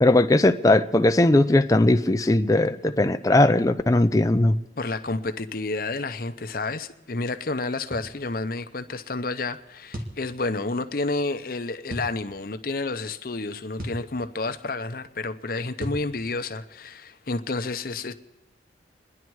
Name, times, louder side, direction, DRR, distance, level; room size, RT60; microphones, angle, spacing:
voice 1, 0.0-4.5, left 2 dB, 20° left, 0.4 m, -19 dB
voice 2, 4.8-18.1, left 3 dB, 50° left, 0.7 m, -30 dB
sound 1, 7.9-8.1 9.9-10.2 11.9-12.1 13.8-14.1 15.8-16.1, equal, 50° right, 2.0 m, -33 dB
28.0 x 11.0 x 4.7 m
head